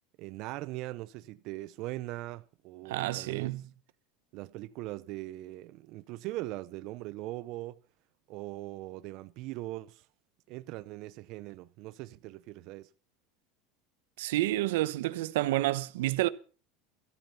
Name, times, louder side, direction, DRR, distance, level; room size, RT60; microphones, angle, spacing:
voice 1, 0.2-3.5 4.3-7.8 8.3-10.1 10.5-12.9, right 18 dB, 55° right, 0.7 m, -40 dB
voice 2, 2.8-3.6 14.2-16.3, right 16 dB, 85° right, 0.9 m, -29 dB
13.5 x 13.0 x 5.7 m
supercardioid pair, 140°, 0 cm